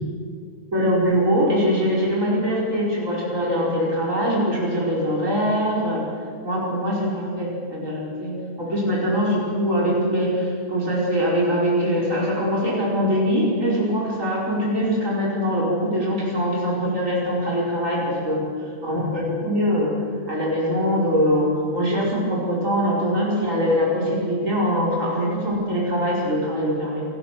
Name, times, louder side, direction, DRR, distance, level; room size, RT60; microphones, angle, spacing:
voice 1, 0.7-6.1 6.4-18.4 18.8-19.9 20.3-27.1, equal, 85° right, -4 dB, 5.3 m, -22 dB
29.0 x 19.5 x 6.8 m, 2.4 s
omnidirectional pair, 1.3 m